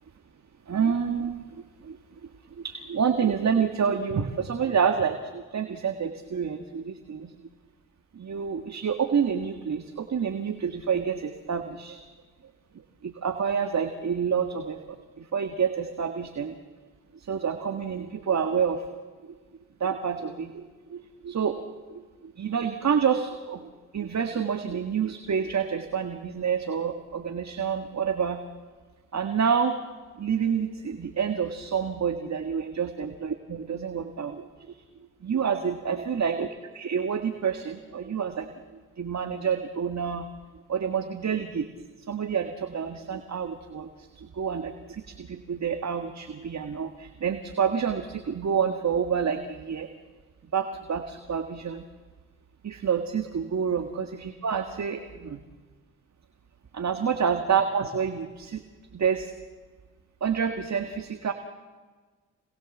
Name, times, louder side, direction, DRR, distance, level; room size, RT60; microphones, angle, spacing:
voice 1, 0.7-2.0 2.6-7.3 8.1-12.0 13.0-16.6 17.1-18.9 19.8-28.4 29.1-29.8 30.2-34.8 35.2-36.5 36.7-38.5 39.0-40.3 40.7-41.7 42.1-49.9 50.5-51.8 52.6-55.4 56.7-58.6 58.9-59.3 60.2-61.3, right 7 dB, 50° right, 6 dB, 1.9 m, -28 dB
27.5 x 20.5 x 7.4 m, 1.4 s
supercardioid pair, 45°, 35 cm